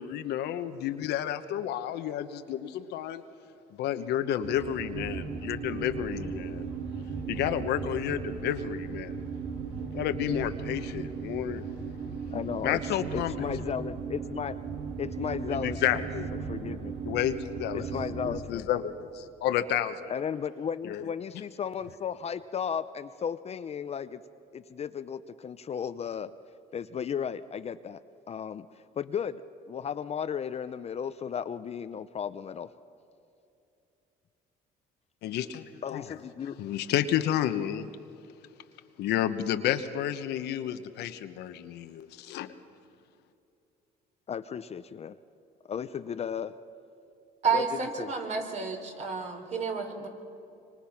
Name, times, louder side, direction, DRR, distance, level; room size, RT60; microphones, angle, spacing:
voice 1, 0.0-3.2 3.8-6.7 7.3-9.2 9.9-11.6 12.6-13.5 15.4-16.3 17.0-17.9 18.2-20.1 20.8-21.1 35.2-36.1 36.6-37.9 39.0-42.5, left 11 dB, 80° left, 9 dB, 1.1 m, -31 dB
sound 1, 4.4-18.4, right 5 dB, 85° right, 3.0 m, -36 dB
voice 2, 12.3-14.6 15.0-16.9 17.7-18.7 20.1-24.2 24.5-26.3 26.7-28.0 28.3-28.7 29.0-32.7 35.8-36.6 44.3-45.2 45.7-46.5 47.5-48.1, left 7 dB, 40° left, 12 dB, 0.6 m, -35 dB
voice 3, 47.4-50.1, right 5 dB, 45° right, 3 dB, 3.8 m, -30 dB
26.0 x 25.0 x 5.9 m, 2.7 s
cardioid pair, 110°, 17 cm